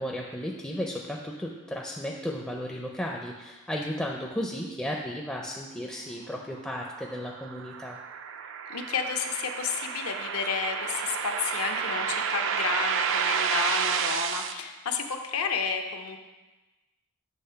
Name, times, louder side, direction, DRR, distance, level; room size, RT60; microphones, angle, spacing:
voice 1, 0.0-8.0, equal, 5° left, -1 dB, 0.4 m, -34 dB
sound 1, 6.7-14.5, right 7 dB, 60° right, 0.4 m, -30 dB
voice 2, 8.7-16.2, left 6 dB, 75° left, 5 dB, 0.6 m, -31 dB
7.8 x 3.3 x 5.6 m, 1.2 s
head